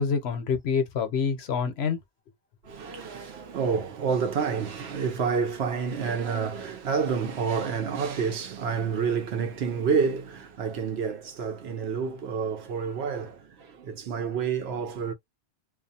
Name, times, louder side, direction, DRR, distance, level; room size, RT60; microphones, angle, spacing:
voice 1, 0.0-2.0, left 6 dB, 65° left, 0.9 m, -26 dB
voice 2, 2.6-15.1, right 6 dB, 65° right, 0.9 m, -29 dB
2.4 x 2.2 x 2.7 m
omnidirectional pair, 1.2 m